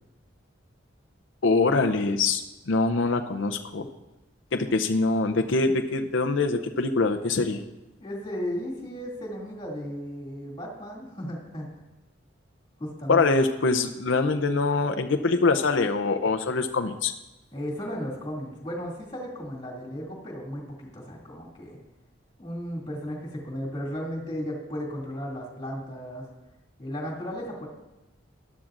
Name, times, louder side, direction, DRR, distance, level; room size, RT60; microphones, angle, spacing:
voice 1, 1.4-3.9 4.5-7.6 13.1-17.1, left 3 dB, 70° left, 6 dB, 0.6 m, -24 dB
voice 2, 8.0-11.7 12.8-13.4 17.5-21.8 22.4-26.2 26.8-27.7, equal, 20° left, -4 dB, 2.4 m, -35 dB
13.0 x 12.5 x 2.5 m, 1.0 s
head